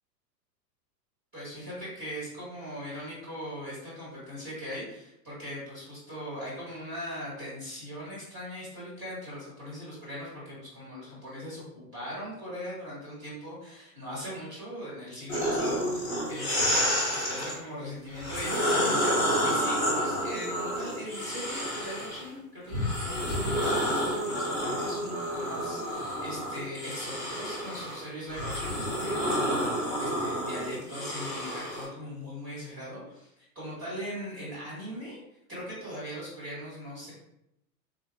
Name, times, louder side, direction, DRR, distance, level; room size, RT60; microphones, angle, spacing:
voice 1, 1.3-35.2 35.5-37.1, equal, 25° right, -7 dB, 1.4 m, -40 dB
sound 1, 15.3-17.5 18.1-22.2 22.7-31.8, equal, 5° right, 0.4 m, -29 dB
3.9 x 2.6 x 2.2 m, 0.82 s
hypercardioid pair, 145°, 49 cm